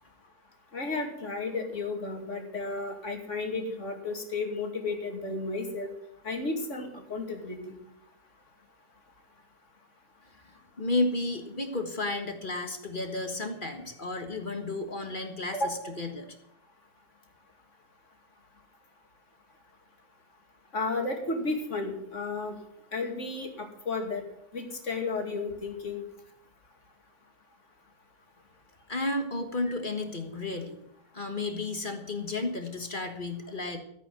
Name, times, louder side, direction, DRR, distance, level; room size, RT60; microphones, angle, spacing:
voice 1, 0.7-5.9 6.2-7.8 15.5-15.7 20.7-22.5 22.9-24.2 24.5-26.0, left 3 dB, 50° left, 3 dB, 2.8 m, -33 dB
voice 2, 10.4-16.3 28.9-30.8 31.1-33.8, left 2 dB, 35° left, 6 dB, 1.6 m, -32 dB
15.0 x 8.3 x 7.7 m, 0.75 s
omnidirectional pair, 1.6 m